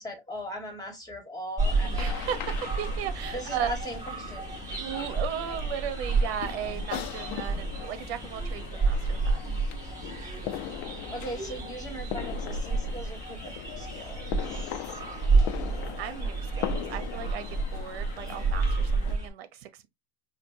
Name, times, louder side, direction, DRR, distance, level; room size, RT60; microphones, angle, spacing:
voice 1, 0.0-2.2 3.3-4.5 10.4-10.7 11.1-15.0 15.3-15.9 16.6-16.7, equal, 10° left, 1.9 m, -40 dB
sound 1, 1.6-19.2, left 11 dB, 55° left, 0.9 m, -40 dB
sound 2, 1.6-19.3, right 3 dB, 10° right, 2.0 m, -30 dB
voice 2, 1.8-3.7 4.7-9.6 16.0-19.9, right 9 dB, 70° right, 1.1 m, -36 dB
5.1 x 2.6 x 2.8 m
hypercardioid pair, 110°, 32 cm